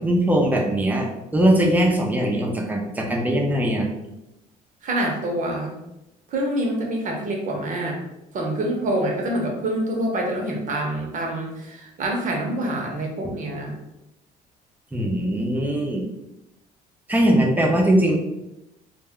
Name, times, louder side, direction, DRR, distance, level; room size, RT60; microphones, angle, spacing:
voice 1, 0.0-3.9 14.9-16.0 17.1-18.2, right 1 dB, 10° right, 0 dB, 0.5 m, -20 dB
voice 2, 4.8-5.8 6.3-8.0 8.3-13.8, right 1 dB, 50° right, 1 dB, 0.7 m, -26 dB
2.2 x 2.1 x 3.5 m, 0.89 s
cardioid pair, 110°, 17 cm